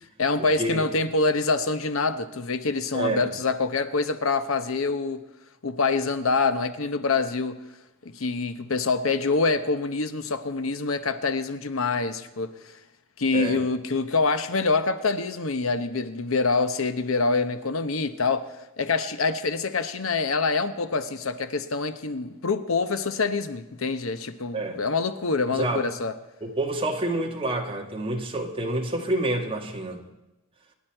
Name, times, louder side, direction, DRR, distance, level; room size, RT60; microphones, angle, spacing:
voice 1, 0.2-5.2 5.6-7.6 8.0-12.8 13.2-26.1, left 4 dB, 75° left, 0.9 m, -26 dB
voice 2, 2.9-3.3 13.3-13.6 24.5-24.8 25.5-25.8 26.4-30.0, right 2 dB, 25° right, 1.6 m, -28 dB
25.5 x 10.5 x 4.6 m
head